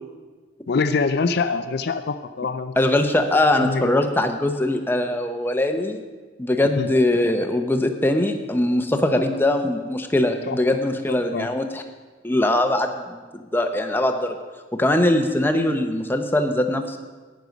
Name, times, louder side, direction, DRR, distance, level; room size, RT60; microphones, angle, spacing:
voice 1, 0.7-2.8 3.6-3.9 6.8-6.9 10.5-10.6 11.1-11.5, left 4 dB, 55° left, 9 dB, 0.4 m, -24 dB
voice 2, 2.8-6.0 6.4-11.8 12.2-14.4 14.7-17.0, left 1 dB, 10° left, 6 dB, 0.7 m, -21 dB
11.0 x 9.4 x 5.2 m, 1.4 s
head